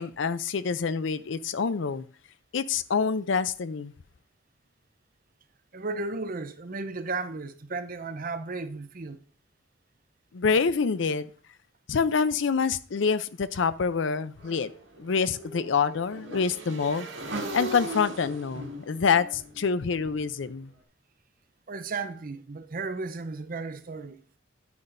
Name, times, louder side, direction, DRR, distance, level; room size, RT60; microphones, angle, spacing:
voice 1, 0.0-2.1 2.5-3.9 10.3-11.3 11.9-14.7 15.0-17.1 17.5-20.7, left 5 dB, 65° left, 0.5 m, -26 dB
voice 2, 5.7-9.2 21.7-24.2, right 3 dB, 45° right, 0.6 m, -34 dB
Motorcycle / Engine, 14.4-20.5, right 1 dB, 70° right, 2.0 m, -39 dB
9.8 x 9.5 x 2.6 m
head